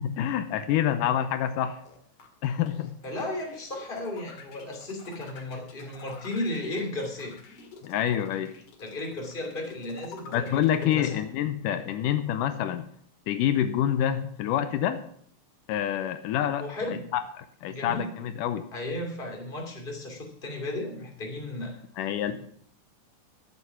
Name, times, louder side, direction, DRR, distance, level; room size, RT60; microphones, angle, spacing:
voice 1, 0.0-1.8 2.4-3.0 7.8-8.6 10.3-12.9 13.3-15.1 15.7-17.2 17.6-18.7 22.0-22.3, left 10 dB, 80° left, 9 dB, 2.3 m, -27 dB
sound 1, 1.9-10.9, left 6 dB, 65° left, 3.2 m, -48 dB
voice 2, 3.0-7.3 8.8-11.2 16.6-17.1 17.7-18.2 18.7-21.8, left 1 dB, 15° left, 1 dB, 2.6 m, -34 dB
13.0 x 8.3 x 5.9 m, 0.62 s
omnidirectional pair, 3.8 m